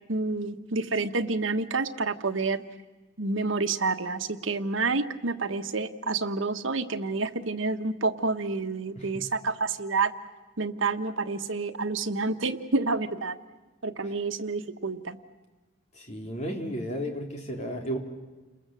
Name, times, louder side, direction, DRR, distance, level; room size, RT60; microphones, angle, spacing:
voice 1, 0.1-2.6 3.2-10.1 10.6-13.4 13.8-15.2, right 3 dB, 80° right, 8 dB, 1.4 m, -29 dB
voice 2, 16.0-18.0, equal, 35° left, 2 dB, 3.6 m, -33 dB
29.5 x 21.0 x 7.7 m, 1.2 s
head